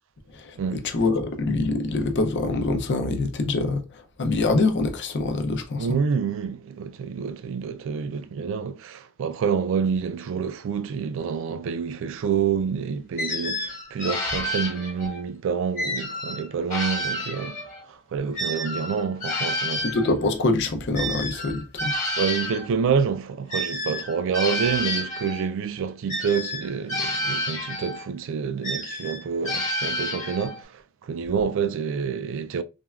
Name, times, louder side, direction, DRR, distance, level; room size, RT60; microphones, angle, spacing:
voice 1, 0.9-5.9 19.8-21.9, left 3 dB, 55° left, 0.6 m, -25 dB
voice 2, 5.8-19.9 22.2-32.6, right 6 dB, 65° right, 0.3 m, -28 dB
sound 1, 13.2-15.2 15.8-17.8 18.3-22.7 23.5-25.5 26.1-28.1 28.6-30.6, left 1 dB, 35° left, 1.2 m, -30 dB
3.3 x 2.1 x 2.3 m
head